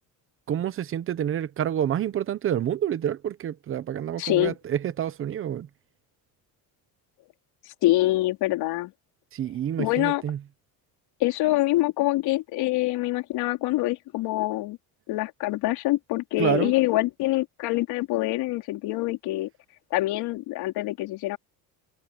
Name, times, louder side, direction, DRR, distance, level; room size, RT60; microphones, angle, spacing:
voice 1, 0.5-5.7 9.3-10.4 16.4-16.7, right 10 dB, 30° right, 0.9 m, -28 dB
voice 2, 4.2-4.5 7.8-8.9 9.8-10.2 11.2-14.8 15.1-19.5 19.9-21.4, left 18 dB, 70° left, 4.2 m, -25 dB
cardioid pair, 165°, 40 cm